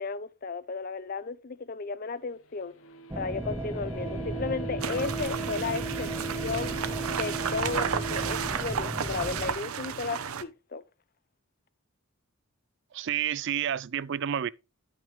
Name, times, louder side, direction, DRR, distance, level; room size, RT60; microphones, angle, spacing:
voice 1, 0.0-2.7 3.1-6.1 6.4-6.8 7.1-10.8, left 4 dB, 40° left, 0.5 m, -34 dB
sound 1, 2.5-8.5, right 4 dB, 65° left, 0.9 m, -38 dB
sound 2, 3.1-9.5, right 1 dB, 10° right, 0.7 m, -36 dB
sound 3, 4.8-10.4, right 7 dB, 75° right, 0.7 m, -33 dB
voice 2, 12.9-14.5, right 9 dB, 55° right, 0.4 m, -29 dB
10.5 x 5.9 x 3.2 m
head